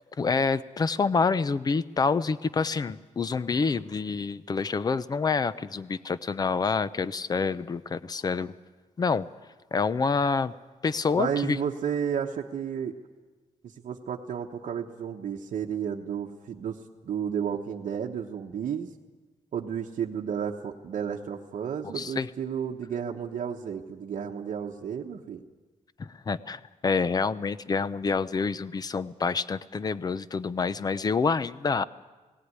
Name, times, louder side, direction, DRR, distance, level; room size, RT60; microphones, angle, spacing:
voice 1, 0.2-8.5 9.0-9.3 9.7-10.5 10.8-11.6 21.9-22.3 26.0-31.8, left 4 dB, 30° left, 16 dB, 0.6 m, -27 dB
voice 2, 11.2-13.0 13.6-18.9 19.5-25.4, right 8 dB, 65° right, -1 dB, 1.1 m, -32 dB
18.5 x 17.0 x 9.6 m, 1.3 s
wide cardioid pair, 155°, 13 cm